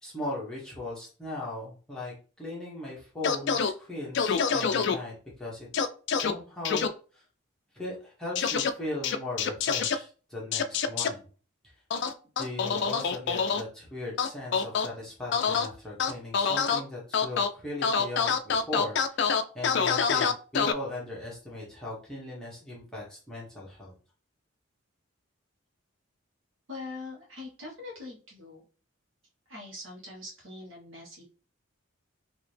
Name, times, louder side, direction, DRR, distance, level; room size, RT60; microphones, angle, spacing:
voice 1, 0.0-5.7 6.1-6.8 7.1-7.2 7.7-11.3 12.4-23.9, left 2 dB, 5° left, -6 dB, 1.3 m, -38 dB
sound 1, 3.2-3.7 4.1-4.9 5.7-6.3 6.6-6.9 8.3-8.7 9.0-9.9 10.5-11.1 11.9-13.6 14.2-14.9 15.3-15.7 16.0-16.8 17.1-17.5 17.8-20.7, left 6 dB, 55° left, 0.3 m, -26 dB
voice 2, 26.7-28.6 29.5-31.2, left 2 dB, 60° right, -2 dB, 1.4 m, -42 dB
3.9 x 2.8 x 3.3 m, 0.37 s
head